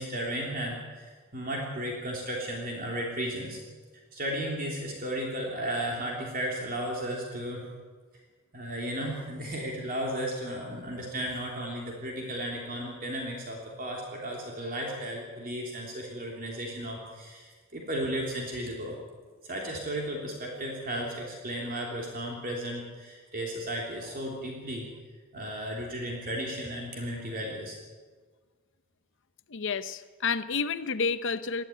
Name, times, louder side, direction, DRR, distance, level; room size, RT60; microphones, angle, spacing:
voice 1, 0.0-3.6 4.1-7.7 8.5-19.0 19.4-24.9 25.3-27.7, right 1 dB, 45° right, -1 dB, 3.2 m, -34 dB
voice 2, 29.5-31.6, left 5 dB, 60° left, 12 dB, 0.8 m, -30 dB
20.0 x 14.0 x 9.2 m, 1.5 s
head